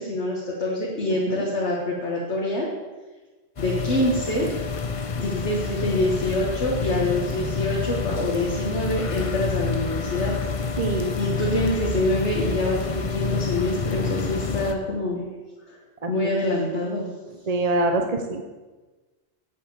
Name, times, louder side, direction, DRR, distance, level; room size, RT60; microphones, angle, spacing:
voice 1, 0.0-2.7 3.6-4.5 5.2-10.4 10.6-10.8 11.2-15.3 15.7-15.8 16.1-17.1, left 1 dB, 75° left, -3 dB, 1.9 m, -25 dB
sound 1, 3.6-14.7, left 4 dB, 35° left, 0.6 m, -28 dB
voice 2, 10.8-11.1 16.0-16.1 17.5-18.4, right 2 dB, 40° right, 5 dB, 0.8 m, -24 dB
8.4 x 7.9 x 7.1 m, 1.3 s
omnidirectional pair, 1.2 m